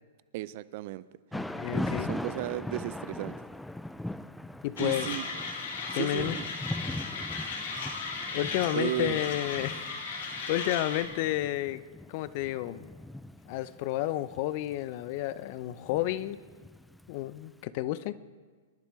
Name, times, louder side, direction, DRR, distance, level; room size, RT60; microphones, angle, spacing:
voice 1, 0.3-1.0 1.7-3.4 4.8-5.3 5.9-6.4 8.7-9.2, right 15 dB, 50° right, 17 dB, 0.6 m, -34 dB
voice 2, 1.3-2.1 4.6-5.1 5.9-6.4 8.3-11.8 12.1-12.8 13.5-16.4 17.1-18.2, left 14 dB, 50° left, 16 dB, 0.7 m, -31 dB
Thunder / Rain, 1.3-17.3, left 1 dB, 5° left, 0.4 m, -40 dB
Mechanisms, 4.8-11.0, left 4 dB, 70° left, 4.1 m, -36 dB
27.0 x 11.5 x 3.2 m, 1.5 s
hypercardioid pair, 115°, 0 cm